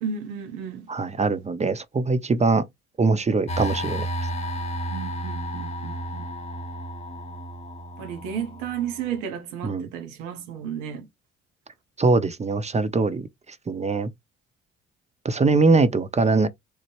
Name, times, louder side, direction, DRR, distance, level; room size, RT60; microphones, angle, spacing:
voice 1, 0.0-0.9 4.9-6.3 8.0-11.1, right 8 dB, 85° right, 0.8 m, -33 dB
voice 2, 0.9-2.6 3.0-4.1 9.6-9.9 12.0-13.3 13.7-14.1 15.2-16.5, right 3 dB, 20° right, 0.6 m, -22 dB
sound 1, 3.5-9.2, right 1 dB, 20° left, 0.8 m, -32 dB
3.1 x 2.1 x 2.8 m
hypercardioid pair, 55°, 31 cm